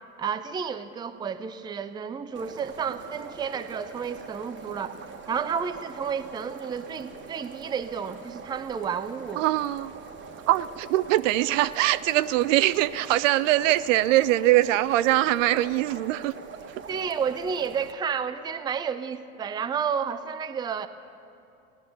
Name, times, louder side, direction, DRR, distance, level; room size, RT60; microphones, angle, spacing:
voice 1, 0.2-5.0 5.3-9.4 16.9-20.9, right 6 dB, 10° right, 10 dB, 0.4 m, -31 dB
sound 1, 2.3-17.9, right 5 dB, 25° right, 1.1 m, -43 dB
voice 2, 9.4-9.9 10.5-16.3, right 15 dB, 65° right, 16 dB, 0.5 m, -22 dB
17.0 x 10.0 x 6.7 m, 2.6 s
hypercardioid pair, 85°, 41 cm